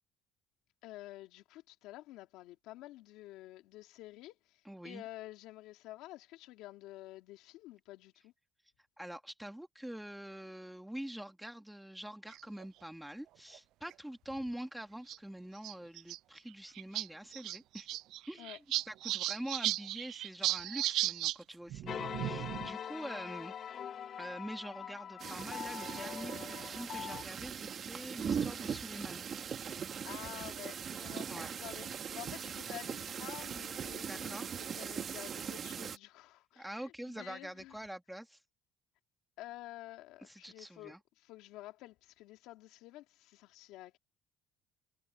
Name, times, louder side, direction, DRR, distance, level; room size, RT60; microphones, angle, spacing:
voice 1, 0.8-8.3 18.4-18.6 30.0-37.8 39.4-44.0, left 16 dB, 75° left, 2.7 m, -50 dB
voice 2, 4.6-5.0 9.0-17.9 18.3-18.5 18.9-23.5 24.2-29.3 30.5-30.6 31.3-31.5 34.0-34.5 36.6-38.4 40.2-41.0, right 1 dB, 5° right, 2.1 m, -45 dB
sound 1, 12.3-12.6 13.5-13.6 13.9-14.0 15.1-15.2 15.6-16.2 16.5-16.6 16.8-17.1 17.3-21.4 21.7-22.7, right 15 dB, 65° right, 0.3 m, -35 dB
sound 2, 21.9-27.2, left 9 dB, 45° left, 3.0 m, -43 dB
sound 3, 25.2-36.0, right 7 dB, 40° right, 1.9 m, -40 dB
cardioid pair, 130°, 0 cm